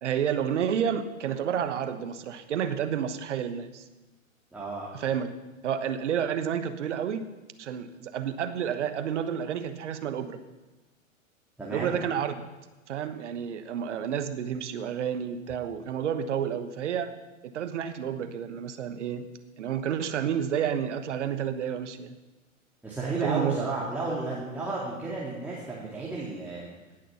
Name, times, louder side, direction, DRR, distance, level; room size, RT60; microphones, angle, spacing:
voice 1, 0.0-3.8 4.9-5.3 5.6-7.3 7.6-10.4 11.7-12.4 12.9-17.1 17.4-19.3 19.6-22.1 23.2-23.6, right 8 dB, 60° right, 10 dB, 1.2 m, -30 dB
voice 2, 4.5-4.9 11.6-12.0 22.8-26.7, right 3 dB, 5° right, -6 dB, 2.3 m, -32 dB
17.5 x 6.6 x 5.8 m, 1.1 s
figure-of-eight pair, 110°, 41 cm